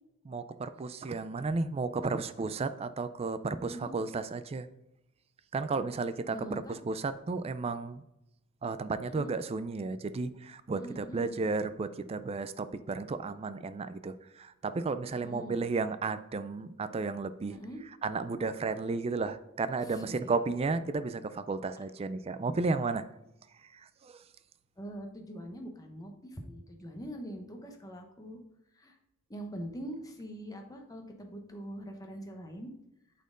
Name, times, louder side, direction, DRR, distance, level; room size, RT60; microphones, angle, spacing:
voice 1, 0.3-4.7 5.5-8.0 8.6-17.6 18.0-23.0 23.7-24.2, right 3 dB, 30° right, 13 dB, 0.3 m, -33 dB
voice 2, 6.3-6.7 9.0-9.3 10.7-11.4 15.2-15.6 17.5-17.8 19.9-20.3 24.8-28.4 28.8-28.9 29.3-32.7, equal, 15° left, 3 dB, 0.9 m, -43 dB
8.2 x 4.3 x 3.8 m, 0.86 s
head